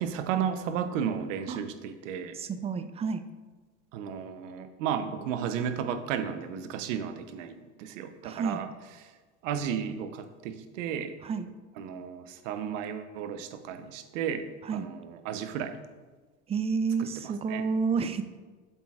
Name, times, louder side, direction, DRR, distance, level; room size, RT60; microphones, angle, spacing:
voice 1, 0.0-2.4 3.9-8.7 9.0-9.1 9.4-11.1 11.8-15.8 17.0-17.6, right 8 dB, 75° right, 9 dB, 0.8 m, -33 dB
voice 2, 2.3-3.2 8.2-8.6 11.2-11.5 14.6-14.9 16.5-18.2, right 5 dB, 15° right, 11 dB, 0.3 m, -30 dB
7.9 x 7.7 x 2.4 m, 1.4 s
hypercardioid pair, 95°, 38 cm